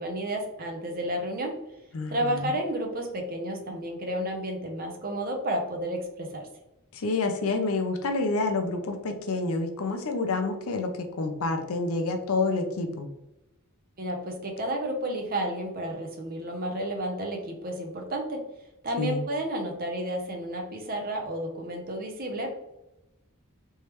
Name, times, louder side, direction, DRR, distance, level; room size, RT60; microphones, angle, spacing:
voice 1, 0.0-1.6 2.1-6.5 14.0-18.4 18.8-22.5, right 1 dB, 40° right, 2 dB, 0.7 m, -31 dB
voice 2, 1.9-2.5 6.9-13.1 19.0-19.2, left 3 dB, 75° left, 5 dB, 0.6 m, -28 dB
3.4 x 3.1 x 3.0 m, 0.93 s
head